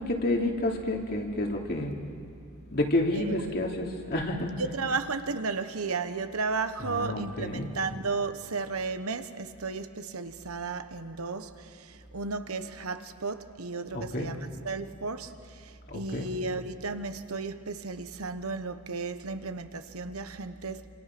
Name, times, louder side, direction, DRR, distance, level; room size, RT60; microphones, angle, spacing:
voice 1, 0.0-1.9 2.7-4.8 6.8-7.7 13.9-14.4 15.9-16.3, left 1 dB, 50° left, 2.9 m, -30 dB
voice 2, 3.1-3.5 4.6-20.9, right 4 dB, 90° right, 1.2 m, -34 dB
27.5 x 26.5 x 6.1 m
head